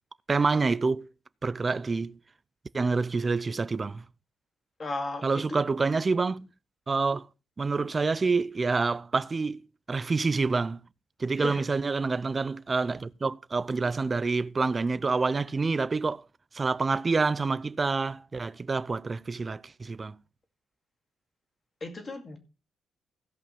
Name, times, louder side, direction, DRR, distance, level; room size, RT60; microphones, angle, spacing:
voice 1, 0.3-1.1 1.4-2.2 2.7-4.1 5.2-6.5 6.9-7.3 7.6-9.6 9.9-10.8 11.2-16.2 16.5-20.2, right 4 dB, 25° right, 0.5 m, -27 dB
voice 2, 4.8-5.6 11.4-11.7 21.8-22.4, left 2 dB, 25° left, 2.2 m, -35 dB
16.5 x 5.5 x 5.3 m
cardioid pair, 155°, 0 cm